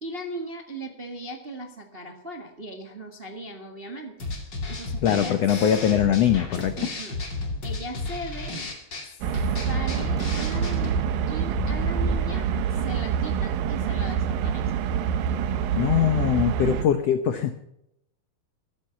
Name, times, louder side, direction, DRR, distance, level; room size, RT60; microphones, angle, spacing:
voice 1, 0.0-4.3 4.7-5.4 6.8-7.2 7.6-8.5 9.0-9.2 9.6-14.9, right 1 dB, 35° right, 4 dB, 0.9 m, -38 dB
sound 1, 4.2-11.1, left 2 dB, 30° left, 2.7 m, -33 dB
voice 2, 5.0-6.7 15.7-17.6, left 9 dB, 80° left, 9 dB, 1.4 m, -22 dB
sound 2, 9.2-16.8, right 8 dB, 75° right, 2.6 m, -26 dB
sound 3, 9.8-10.2 11.3-15.7, equal, ahead, 2.9 m, -36 dB
13.5 x 13.5 x 5.8 m, 0.80 s
omnidirectional pair, 4.3 m